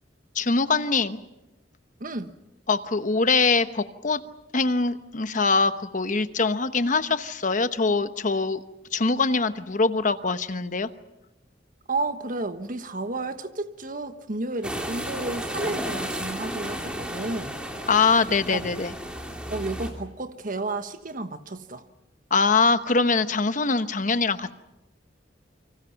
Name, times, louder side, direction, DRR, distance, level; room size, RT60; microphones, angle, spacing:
voice 1, 0.3-1.2 2.7-4.2 4.5-8.6 8.9-10.9 17.9-18.9 22.3-24.5, left 4 dB, 45° left, 1.0 m, -23 dB
voice 2, 2.0-2.3 11.9-17.6 18.5-18.7 19.5-21.8, right 2 dB, 45° right, 1.3 m, -32 dB
sound 1, 14.6-19.9, equal, 5° right, 3.2 m, -33 dB
28.5 x 25.0 x 5.8 m
head